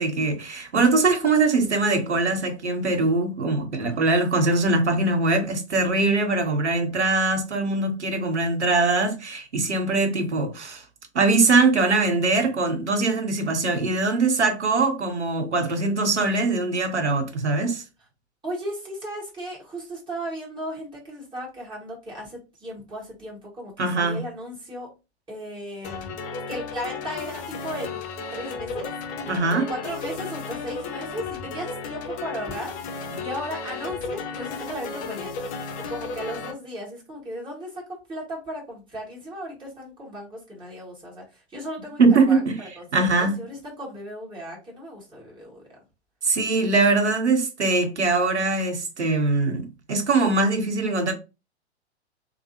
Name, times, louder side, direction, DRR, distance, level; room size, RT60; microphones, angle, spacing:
voice 1, 0.0-10.8 11.1-17.8 23.8-24.2 29.3-29.7 42.0-42.6 42.9-43.4 46.2-51.1, right 3 dB, 85° right, 0.8 m, -22 dB
voice 2, 18.4-24.9 25.3-26.1 26.5-28.0 28.3-28.9 29.5-35.5 35.8-45.7, equal, 15° right, 1.5 m, -36 dB
sound 1, 25.8-36.5, left 4 dB, 25° left, 0.5 m, -34 dB
3.2 x 2.0 x 2.8 m
figure-of-eight pair, 105°, 34 cm